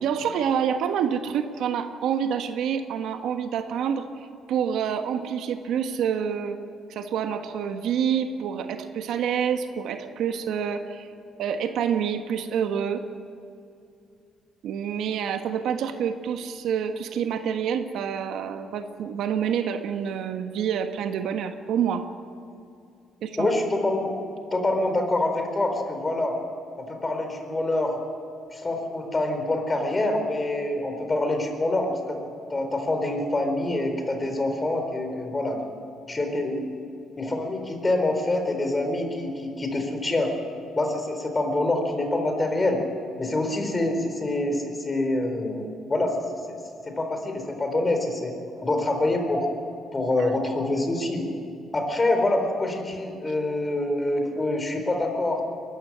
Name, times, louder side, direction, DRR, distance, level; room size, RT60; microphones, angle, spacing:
voice 1, 0.0-4.1 4.5-6.6 6.9-11.1 11.4-13.0 14.6-22.0 23.2-23.5, right 8 dB, 75° right, 7 dB, 1.4 m, -27 dB
voice 2, 23.4-24.1 24.5-26.4 26.8-28.0 28.5-32.2 32.5-35.6 36.1-36.7 37.2-40.3 40.8-42.8 43.2-45.6 45.9-46.1 46.5-46.6 46.9-48.3 48.6-49.5 49.9-51.3 51.7-55.4, left 2 dB, 20° left, 5 dB, 4.1 m, -26 dB
22.0 x 14.0 x 10.0 m, 2.5 s
cardioid pair, 105°, 0 cm